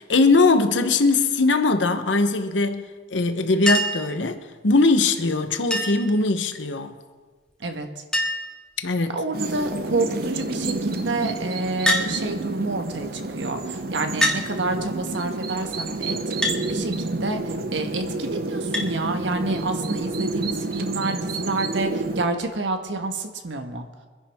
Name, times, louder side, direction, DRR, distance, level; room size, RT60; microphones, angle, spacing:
voice 1, 0.0-2.8 3.1-4.4 4.6-6.9 8.8-9.2, left 3 dB, 85° left, 0.9 m, -20 dB
Chink clink, 3.7-4.1 5.7-6.1 7.5-7.6 7.8-7.9 8.1-8.6 9.3-9.7 11.8-12.1 13.2-13.3 14.2-14.4 16.4-16.6 18.7-18.9 20.3-20.4, left 1 dB, 5° left, 1.7 m, -23 dB
voice 2, 9.1-16.2 16.6-17.4 17.7-23.9, right 2 dB, 80° right, 1.4 m, -28 dB
sound 1, 9.3-22.3, right 2 dB, 55° right, 0.8 m, -29 dB
24.5 x 10.5 x 3.5 m
head